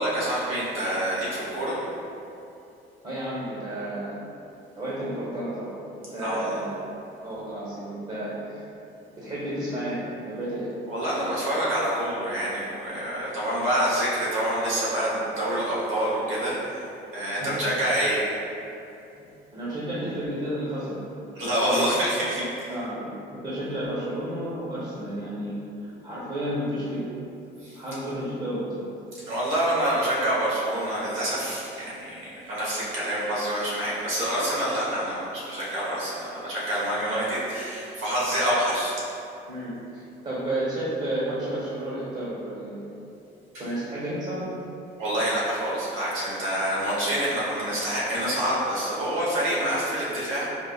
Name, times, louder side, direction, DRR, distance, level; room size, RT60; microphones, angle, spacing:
voice 1, 0.0-1.9 6.2-6.6 10.9-16.8 17.1-18.3 21.4-22.4 27.6-27.8 29.2-39.0 45.0-50.5, right 1 dB, 85° right, -7 dB, 1.2 m, -27 dB
voice 2, 3.0-4.2 4.7-5.8 6.1-6.7 7.2-8.6 9.2-10.7 17.4-17.6 19.2-21.1 21.4-21.8 22.3-27.1 27.7-28.9 39.5-42.9 43.6-44.5, right 1 dB, 30° right, -9 dB, 1.0 m, -32 dB
5.0 x 2.4 x 2.4 m, 2.8 s
cardioid pair, 90°, 20 cm